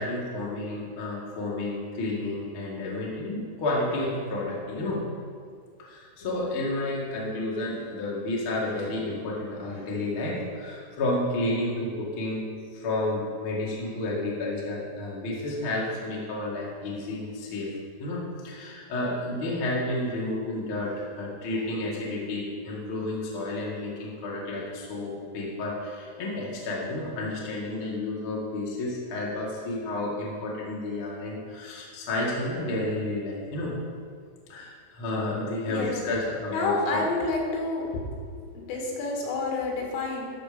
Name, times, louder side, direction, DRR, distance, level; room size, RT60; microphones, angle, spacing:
voice 1, 0.0-5.0 5.8-12.5 12.7-17.7 18.0-33.7 34.5-37.0, left 2 dB, 60° left, -5 dB, 1.3 m, -31 dB
voice 2, 35.6-35.9 36.5-38.1 38.5-40.3, left 3 dB, 80° left, -1 dB, 4.2 m, -29 dB
12.5 x 6.2 x 5.1 m, 2.1 s
omnidirectional pair, 5.8 m